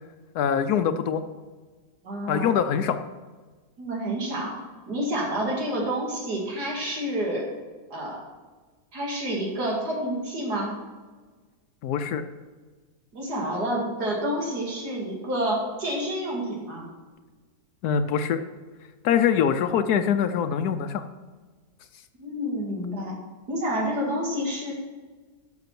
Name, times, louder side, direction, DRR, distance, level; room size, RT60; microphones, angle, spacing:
voice 1, 0.3-1.2 2.3-3.0 11.8-12.2 17.8-18.4 19.0-21.0, left 8 dB, 80° left, 9 dB, 1.1 m, -23 dB
voice 2, 2.0-2.6 3.8-4.6 4.9-7.4 7.9-8.2 8.9-10.7 13.1-16.9 22.2-23.1 23.5-24.7, equal, 85° right, -3 dB, 2.8 m, -29 dB
12.0 x 6.1 x 5.9 m, 1.4 s
omnidirectional pair, 1.7 m